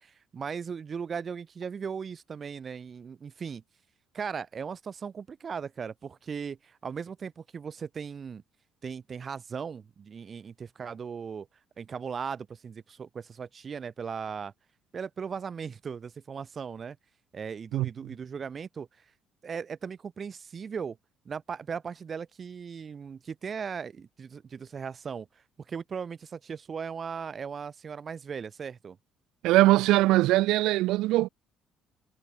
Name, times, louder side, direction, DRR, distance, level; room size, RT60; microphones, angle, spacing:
voice 1, 0.0-3.6 4.1-8.4 8.8-11.5 11.8-14.5 14.9-17.0 17.3-18.9 19.4-21.0 21.2-25.3 25.7-29.0, right 6 dB, 30° right, 4.7 m, -38 dB
voice 2, 29.4-31.3, right 17 dB, 85° right, 3.0 m, -21 dB
cardioid pair, 150°, 0 cm